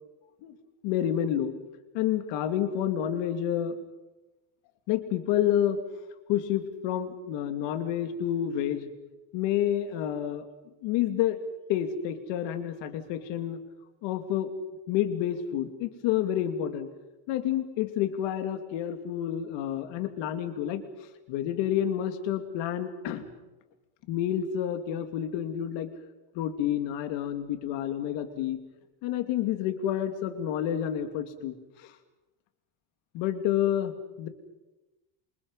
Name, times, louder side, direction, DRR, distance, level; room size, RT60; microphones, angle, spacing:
voice 1, 0.8-1.5 1.9-3.8 4.9-5.8 6.3-8.9 9.3-10.5 10.8-11.4 11.7-13.6 14.0-14.5 14.9-16.9 17.3-20.8 21.3-23.3 24.1-25.9 26.3-28.6 29.0-31.9 33.1-34.3, left 10 dB, 60° left, 7 dB, 2.7 m, -29 dB
27.5 x 26.5 x 5.6 m, 1.1 s
cardioid pair, 175°, 49 cm